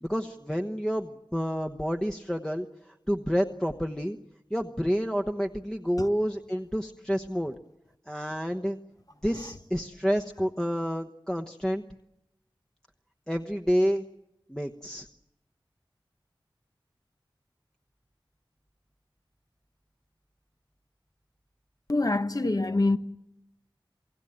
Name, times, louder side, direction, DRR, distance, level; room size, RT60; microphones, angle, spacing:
voice 1, 0.0-4.2 4.5-7.5 8.1-8.8 9.2-11.8 13.3-14.1 14.5-15.1, equal, 5° left, 1.1 m, -29 dB
voice 2, 21.9-23.0, left 2 dB, 45° left, 1.1 m, -25 dB
28.5 x 17.5 x 8.9 m
wide cardioid pair, 45°, 9 cm